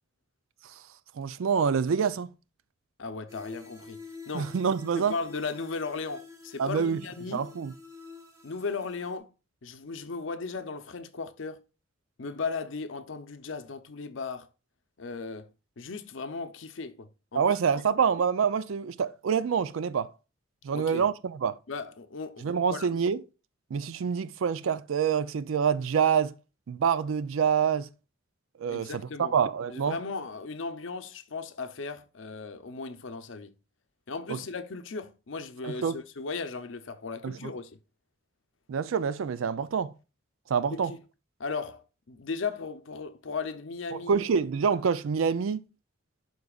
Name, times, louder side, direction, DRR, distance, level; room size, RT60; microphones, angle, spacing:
voice 1, 1.2-2.3 4.3-5.1 6.6-7.0 7.3-7.7 17.4-20.1 20.6-21.6 22.4-23.2 23.7-26.3 26.7-27.9 28.6-30.0 34.3-34.4 35.6-36.0 37.2-37.5 38.7-39.9 40.5-40.9 44.1-45.6, right 6 dB, 80° right, 0.4 m, -26 dB
voice 2, 3.0-4.0 4.3-4.5 5.0-7.4 8.4-9.3 9.6-11.6 12.2-14.5 15.0-15.5 15.8-17.5 20.7-21.1 21.7-22.9 28.7-29.3 29.7-33.5 34.1-37.7 40.7-41.0 41.4-44.2, left 4 dB, 70° left, 0.6 m, -36 dB
sound 1, 3.3-9.2, left 4 dB, 15° right, 0.9 m, -48 dB
12.0 x 4.0 x 2.4 m
head